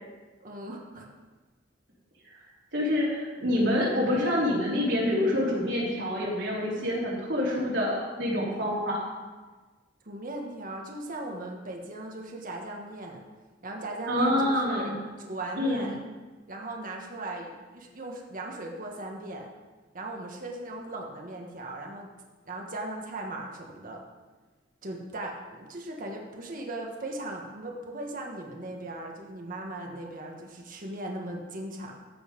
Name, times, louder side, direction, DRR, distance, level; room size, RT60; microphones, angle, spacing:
voice 1, 0.4-1.1 10.0-13.2 13.6-14.9 15.2-16.0 16.5-19.5 19.9-22.1 22.5-24.0 24.8-31.9, right 1 dB, 50° right, 0 dB, 1.3 m, -38 dB
voice 2, 2.7-9.0 14.1-15.0 15.6-15.8, left 1 dB, 80° right, -6 dB, 3.7 m, -26 dB
14.5 x 5.5 x 5.2 m, 1.3 s
head